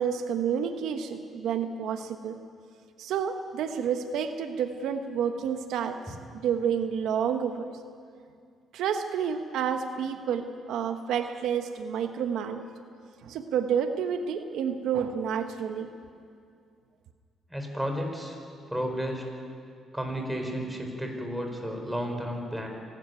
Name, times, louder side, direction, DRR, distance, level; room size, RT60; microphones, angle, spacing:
voice 1, 0.0-2.4 3.0-7.7 8.7-12.6 13.2-15.9, right 7 dB, 80° right, 7 dB, 1.1 m, -29 dB
voice 2, 17.5-18.4 18.7-19.2 19.9-22.7, equal, 5° right, 2 dB, 4.9 m, -32 dB
26.0 x 12.5 x 9.5 m, 2.3 s
cardioid pair, 90°, 0 cm